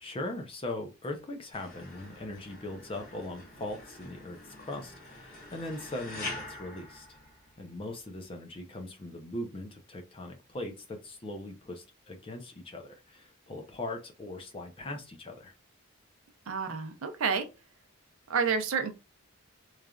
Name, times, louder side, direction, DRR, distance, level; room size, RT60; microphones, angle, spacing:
voice 1, 0.0-7.1 7.6-15.5, left 1 dB, 25° left, 4 dB, 0.4 m, -40 dB
sound 1, 1.5-7.8, left 2 dB, 40° left, 1.3 m, -45 dB
voice 2, 16.5-17.5 18.3-18.9, right 5 dB, 70° right, 7 dB, 0.5 m, -29 dB
3.1 x 2.4 x 2.3 m, 0.28 s
head